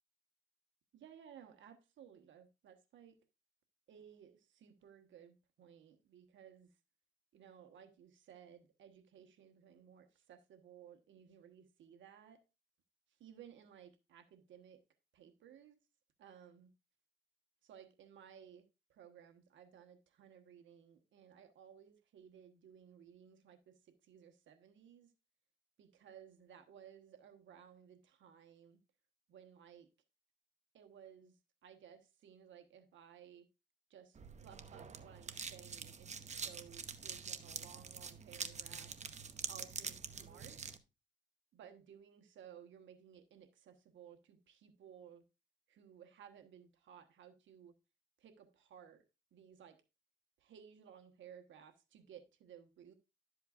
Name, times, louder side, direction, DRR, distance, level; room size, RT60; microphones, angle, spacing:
voice 1, 0.9-3.2 3.9-6.7 7.3-12.4 13.2-14.8 15.1-15.8 16.2-16.7 17.6-18.6 18.9-25.1 25.8-28.8 29.3-29.9 30.7-31.3 31.6-33.5 33.9-38.9 39.5-40.6 41.5-45.2 45.7-47.7 48.2-49.0 49.3-49.8 50.4-52.9, right 8 dB, 70° right, 1.2 m, -58 dB
sound 1, 34.2-40.8, right 6 dB, 35° right, 0.9 m, -46 dB
12.0 x 7.7 x 2.5 m
cardioid pair, 90°, 20 cm